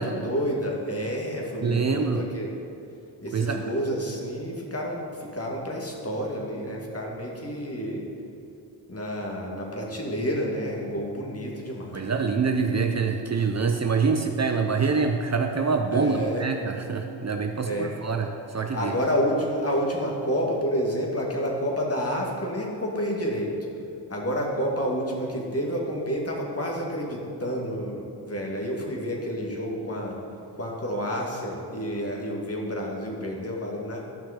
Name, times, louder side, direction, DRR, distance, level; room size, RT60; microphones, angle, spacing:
voice 1, 0.0-2.5 3.2-8.1 8.9-12.1 15.9-16.5 17.6-18.0 18.7-23.6 24.1-30.2 30.6-34.0, equal, 30° left, -1 dB, 2.1 m, -29 dB
voice 2, 1.6-2.2 3.3-3.6 11.9-18.3 18.5-19.0, right 5 dB, 35° right, 5 dB, 0.7 m, -25 dB
10.5 x 5.8 x 5.0 m, 2.6 s
supercardioid pair, 45°, 45 cm